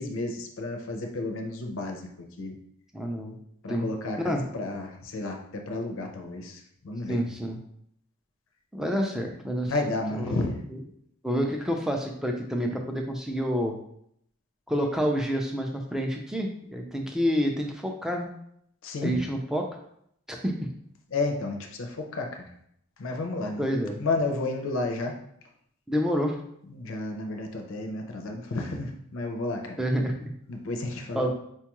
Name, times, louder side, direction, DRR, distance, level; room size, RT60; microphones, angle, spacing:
voice 1, 0.0-2.1 2.4-2.6 3.6-7.2 9.6-10.5 18.8-19.2 21.1-22.5 23.0-23.7 24.0-25.1 26.7-29.8 30.5-31.3, left 2 dB, 60° left, 3 dB, 0.5 m, -31 dB
voice 2, 2.9-3.4 3.7-3.9 4.2-4.4 7.1-7.6 8.7-9.7 10.1-10.4 10.7-10.8 11.2-13.7 14.7-18.3 19.0-19.7 20.3-20.7 23.6-24.0 25.9-26.4 29.8-30.3 31.1-31.3, equal, ahead, 2 dB, 0.3 m, -28 dB
4.5 x 2.3 x 2.9 m, 0.71 s
head